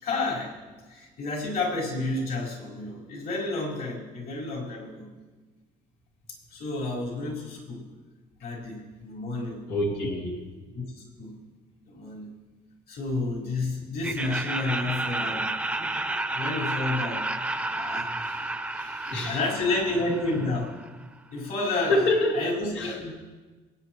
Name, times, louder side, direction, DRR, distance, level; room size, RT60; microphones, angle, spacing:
voice 1, 0.0-0.5 0.9-5.1 6.5-7.8 8.4-9.6 10.7-11.4 11.9-12.3 12.9-15.5 16.3-17.3 17.7-18.1 19.2-20.7 21.3-22.0 22.3-23.1, left 2 dB, 65° left, -4 dB, 4.8 m, -30 dB
voice 2, 9.7-10.3 18.7-19.4 20.0-20.1 21.7-22.4 22.7-23.1, left 2 dB, 90° left, -2 dB, 2.4 m, -27 dB
Laughter, 14.0-21.0, right 2 dB, 5° right, 0.7 m, -31 dB
23.5 x 9.8 x 3.1 m, 1.3 s
cardioid pair, 110°, 17 cm